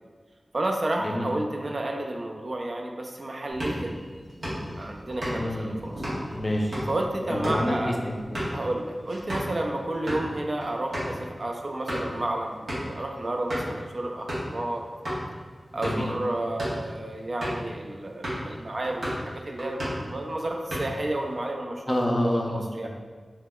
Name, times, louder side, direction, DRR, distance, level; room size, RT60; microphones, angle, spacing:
voice 1, 0.5-4.0 4.8-6.0 6.9-8.1 8.5-14.9 15.7-22.1 22.5-22.9, right 1 dB, 55° right, 2 dB, 0.3 m, -31 dB
sound 1, 3.5-9.6 9.9-10.2 10.6-10.7 10.9-11.1 11.6-12.2 12.7-13.0 13.5-13.8 14.3-14.5 15.0-15.2 15.7-16.1 16.5-16.8 17.4-17.7 18.2-18.5 18.8-19.3 19.6-20.1 20.5-21.1, equal, 85° right, 0.9 m, -33 dB
voice 2, 5.3-5.8 6.3-6.7 7.3-7.7 8.0-8.4 15.8-16.1 21.9-22.9, left 1 dB, 35° left, 0 dB, 0.4 m, -28 dB
2.8 x 2.0 x 3.5 m, 1.5 s
wide cardioid pair, 80°, 0 cm